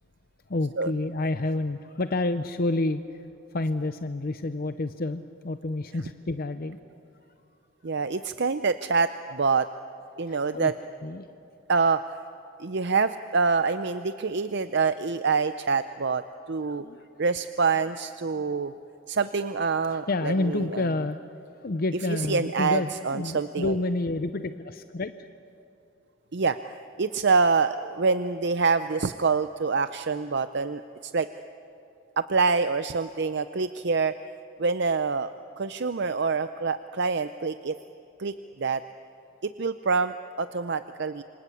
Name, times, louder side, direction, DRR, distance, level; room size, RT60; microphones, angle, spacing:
voice 1, 0.5-6.8 10.1-10.7 11.0-11.3 16.6-17.0 18.3-18.4 19.7-21.2 21.5-25.3, left 2 dB, 45° left, 10 dB, 0.6 m, -29 dB
voice 2, 7.8-9.7 10.2-10.7 11.7-12.2 12.6-16.2 16.5-16.8 17.2-18.7 19.1-20.8 22.1-23.7 26.3-31.3 32.2-34.1 34.6-35.3 35.6-37.8 38.2-38.8 39.4-41.2, right 4 dB, 50° right, 11 dB, 0.6 m, -26 dB
27.5 x 25.5 x 8.4 m, 2.7 s
head